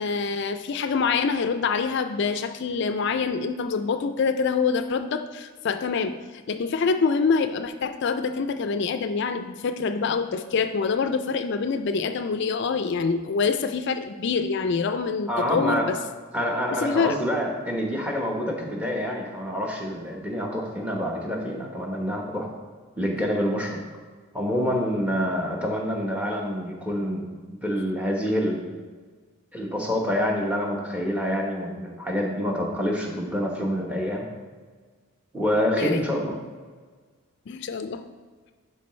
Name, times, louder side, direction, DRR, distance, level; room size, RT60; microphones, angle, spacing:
voice 1, 0.0-16.0 16.7-17.2 35.8-36.0 37.5-38.0, left 5 dB, 55° left, 9 dB, 0.4 m, -25 dB
voice 2, 15.3-15.9 16.3-22.5 23.0-23.8 24.3-28.7 29.5-34.3 35.3-36.4, equal, 5° right, -1 dB, 1.0 m, -27 dB
11.0 x 4.7 x 3.2 m, 1.5 s
head